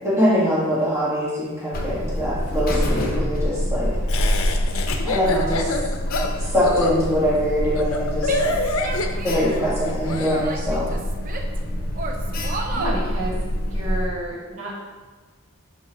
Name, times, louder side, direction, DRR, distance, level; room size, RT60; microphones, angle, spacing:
voice 1, 0.0-3.9 5.0-5.7 6.3-8.3 9.2-10.9, equal, 15° right, -8 dB, 1.6 m, -23 dB
Alarm, 1.7-14.1, equal, 40° left, 0.8 m, -26 dB
Laughter, 4.1-10.4, left 2 dB, 75° left, 0.6 m, -26 dB
Female speech woman speaking / Yell, 8.2-9.6 10.0-11.6 11.9-13.0, right 3 dB, 40° right, 0.5 m, -32 dB
voice 2, 12.7-13.3 13.7-14.7, right 1 dB, 80° right, -4 dB, 1.8 m, -30 dB
6.4 x 5.4 x 2.9 m, 1.3 s
head